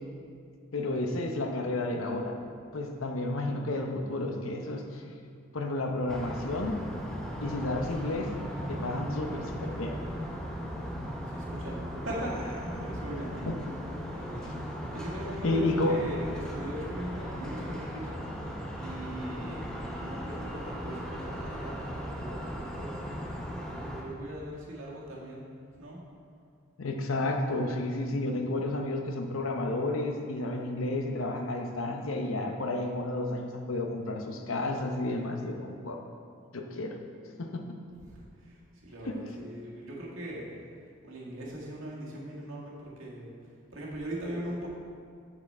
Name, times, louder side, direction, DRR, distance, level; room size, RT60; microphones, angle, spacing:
voice 1, 0.7-2.4 2.7-5.0 5.5-6.8 7.4-8.3 8.7-10.0 13.5-13.6 15.4-16.0 26.8-36.0 36.5-37.0 37.4-37.6 39.0-39.2, left 2 dB, 80° left, 3 dB, 0.8 m, -31 dB
sound 1, 6.1-24.0, equal, 5° left, 0.8 m, -37 dB
voice 2, 11.3-13.5 14.0-14.6 14.9-18.2 18.8-25.4 25.8-26.0 38.1-40.5 41.0-43.3 43.7-44.7, right 1 dB, 80° right, -5 dB, 1.9 m, -40 dB
7.2 x 6.9 x 4.3 m, 2.2 s
head